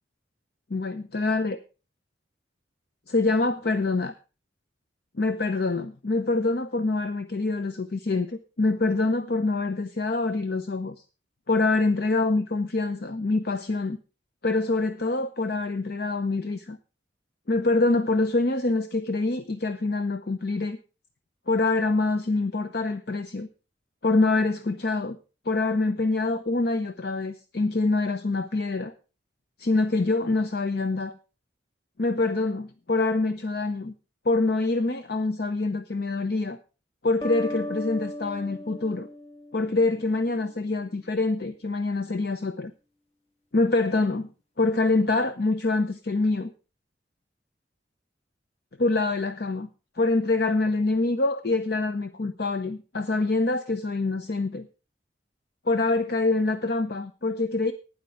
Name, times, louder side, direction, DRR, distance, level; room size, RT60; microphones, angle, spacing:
voice 1, 0.7-1.6 3.1-4.1 5.2-10.9 11.5-14.0 14.4-16.8 17.5-20.8 21.5-23.5 24.0-25.2 25.5-28.9 29.6-31.1 32.0-33.9 34.3-36.6 37.0-39.1 39.5-42.7 43.5-44.3 44.6-46.5 48.8-49.7 50.0-54.7 55.7-57.7, left 3 dB, 55° left, 10 dB, 0.7 m, -25 dB
sound 1, 37.2-40.0, left 1 dB, 35° left, 1.4 m, -36 dB
12.0 x 9.6 x 4.7 m, 0.33 s
head